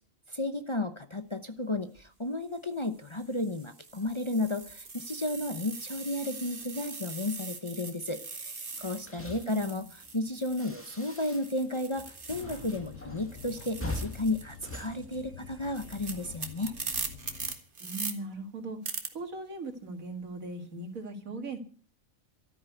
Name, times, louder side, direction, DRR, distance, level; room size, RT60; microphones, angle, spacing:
voice 1, 0.3-16.7, left 2 dB, 25° left, 8 dB, 0.8 m, -33 dB
sound 1, 1.8-2.0 2.8-12.9 13.2-18.1 18.8-19.1, right 4 dB, 40° right, 1.8 m, -42 dB
sound 2, 8.7-11.7 11.9-15.8, left 1 dB, 10° left, 1.9 m, -43 dB
voice 2, 9.3-9.9 17.8-18.8 19.1-21.6, right 2 dB, 80° right, 5 dB, 2.5 m, -39 dB
sound 3, 12.3-17.5, left 5 dB, 70° left, 1.6 m, -48 dB
13.0 x 9.4 x 8.0 m, 0.44 s
omnidirectional pair, 1.4 m